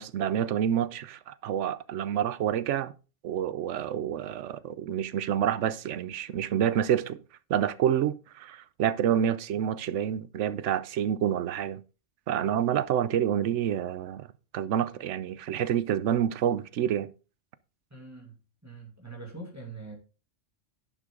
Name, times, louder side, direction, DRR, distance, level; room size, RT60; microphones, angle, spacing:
voice 1, 0.0-2.9 3.2-7.2 7.5-11.8 12.3-14.3 14.5-17.1, right 9 dB, 85° right, 1.0 m, -28 dB
voice 2, 17.9-20.0, right 3 dB, 15° right, 2.4 m, -44 dB
11.5 x 7.7 x 3.8 m
omnidirectional pair, 1.2 m